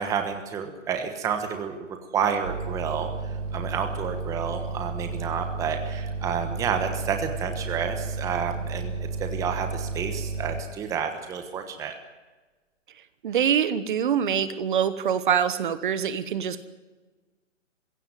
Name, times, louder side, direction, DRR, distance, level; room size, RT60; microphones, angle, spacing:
voice 1, 0.0-1.8 2.1-3.1 3.5-11.9, right 7 dB, 10° right, 6 dB, 1.2 m, -30 dB
sound 1, 2.4-10.6, right 3 dB, 75° right, 4.3 m, -32 dB
voice 2, 13.2-16.6, right 8 dB, 40° right, 13 dB, 1.3 m, -24 dB
21.5 x 16.5 x 9.4 m, 1.3 s
hypercardioid pair, 155°, 38 cm